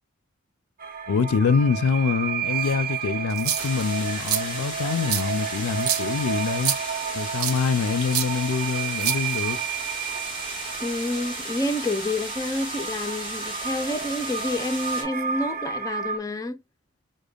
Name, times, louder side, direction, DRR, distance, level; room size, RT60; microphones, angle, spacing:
sound 1, 0.8-16.2, right 7 dB, 45° right, 0.6 m, -32 dB
voice 1, 1.1-6.8 7.1-9.6, left 5 dB, 85° left, 0.4 m, -25 dB
sound 2, 3.3-3.8 4.2-4.4 5.1-5.2 5.8-6.0 6.6-6.8 7.4-7.6 8.1-8.3 9.0-9.6, right 9 dB, 85° right, 0.6 m, -26 dB
sound 3, 3.6-15.0, right 1 dB, 25° right, 1.4 m, -35 dB
voice 2, 10.8-16.6, left 1 dB, 15° left, 0.4 m, -29 dB
5.0 x 2.1 x 2.3 m
head